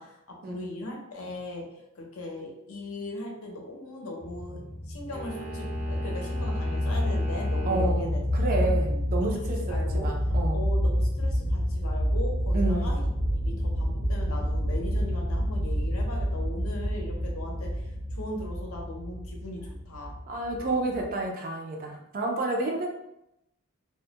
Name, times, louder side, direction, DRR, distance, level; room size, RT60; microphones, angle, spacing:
voice 1, 0.0-8.2 8.6-10.2 10.5-13.1 13.5-20.2, left 1 dB, 70° left, 0 dB, 0.6 m, -39 dB
sound 1, 4.2-21.2, equal, 25° left, 0.7 m, -28 dB
sound 2, 5.1-7.9, right 1 dB, 70° right, 0.9 m, -40 dB
voice 2, 7.7-10.6 12.5-12.9 20.3-22.9, right 2 dB, 40° right, 1 dB, 0.4 m, -30 dB
2.2 x 2.0 x 2.8 m, 0.84 s
head